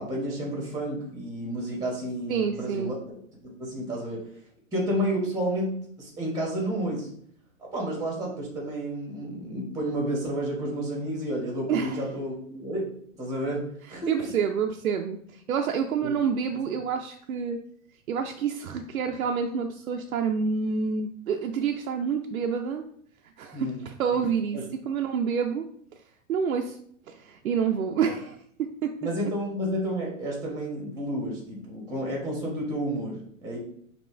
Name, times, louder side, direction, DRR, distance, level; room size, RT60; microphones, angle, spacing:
voice 1, 0.0-3.0 3.4-4.3 4.7-7.1 7.6-12.9 13.2-14.3 16.0-16.1 23.5-23.8 24.5-24.6 29.0-33.6, right 1 dB, 10° right, -2 dB, 1.4 m, -31 dB
voice 2, 2.3-2.9 11.7-12.0 14.1-17.6 18.1-22.8 23.4-25.6 26.3-26.8 27.1-28.9, right 6 dB, 80° right, 4 dB, 0.6 m, -28 dB
5.2 x 2.9 x 3.3 m, 0.65 s
hypercardioid pair, 110°, 42 cm